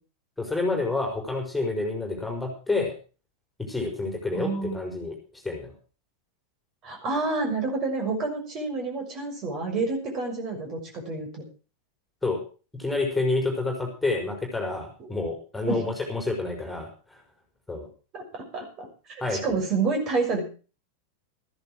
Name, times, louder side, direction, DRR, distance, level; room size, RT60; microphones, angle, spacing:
voice 1, 0.4-2.9 3.6-5.7 12.2-12.4 12.8-17.2 17.7-17.9 19.2-19.6, left 3 dB, 5° left, 1 dB, 4.9 m, -29 dB
voice 2, 4.3-4.8 6.8-11.4 15.7-15.8 18.1-20.4, right 3 dB, 35° right, 2 dB, 6.3 m, -29 dB
14.5 x 11.0 x 6.2 m, 0.36 s
figure-of-eight pair, 90°, 0 cm